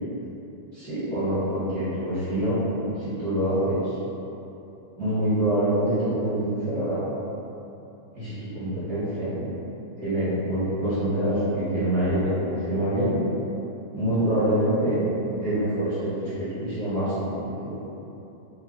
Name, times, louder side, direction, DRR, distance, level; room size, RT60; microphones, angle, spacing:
voice 1, 0.7-2.6 3.0-3.9 5.0-7.0 8.2-9.5 10.0-13.2 13.9-15.0 15.2-17.8, right 1 dB, 50° right, -13 dB, 1.3 m, -25 dB
3.6 x 2.1 x 3.9 m, 3.0 s
omnidirectional pair, 2.4 m